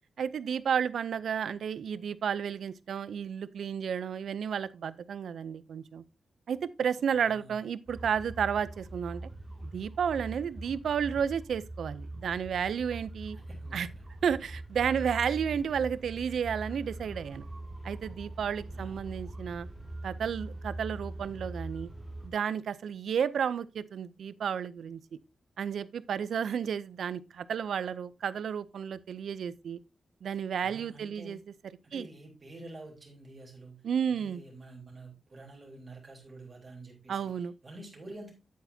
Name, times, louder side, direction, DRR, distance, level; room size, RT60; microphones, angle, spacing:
voice 1, 0.2-6.0 6.5-9.2 9.7-13.4 13.7-13.9 14.2-17.4 17.8-19.7 20.0-21.9 22.2-25.0 25.6-29.8 30.2-31.4 31.9-32.0 33.8-34.4 37.1-37.5, right 7 dB, 80° right, 0.5 m, -32 dB
voice 2, 7.2-7.7 13.3-14.0 18.7-19.2 30.6-31.4 31.8-33.8 34.1-37.3 37.6-38.3, right 2 dB, 30° right, 3.6 m, -48 dB
sound 1, 7.9-22.3, right 2 dB, 10° right, 2.2 m, -42 dB
9.3 x 8.6 x 2.7 m
wide cardioid pair, 150°, 0 cm